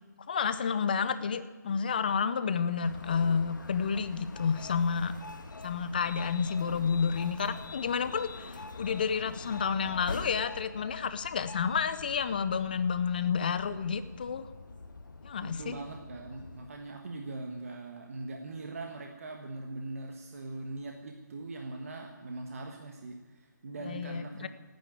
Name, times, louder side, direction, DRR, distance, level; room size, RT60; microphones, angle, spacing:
voice 1, 0.3-5.1 5.6-14.5 15.2-15.8 23.8-24.5, left 6 dB, 25° left, 13 dB, 0.6 m, -30 dB
sound 1, 2.8-16.7, left 3 dB, 80° left, 1.7 m, -45 dB
voice 2, 15.4-24.5, right 2 dB, 45° right, 3 dB, 1.4 m, -41 dB
16.0 x 9.5 x 9.3 m, 1.3 s
hypercardioid pair, 170°, 10 cm